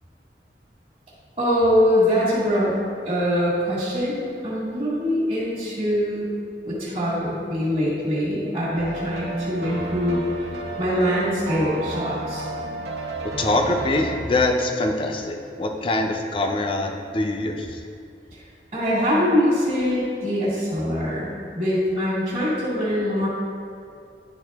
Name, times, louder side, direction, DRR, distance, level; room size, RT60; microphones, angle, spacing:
voice 1, 1.4-2.7 3.0-4.2 4.4-6.3 6.6-10.2 10.8-12.5 18.7-21.3 21.5-23.3, equal, 35° right, -11 dB, 1.4 m, -23 dB
sound 1, 8.8-14.2, right 2 dB, 75° right, 0.7 m, -32 dB
voice 2, 13.4-17.8, left 2 dB, 30° left, 3 dB, 0.5 m, -24 dB
10.5 x 3.6 x 3.4 m, 2.4 s
head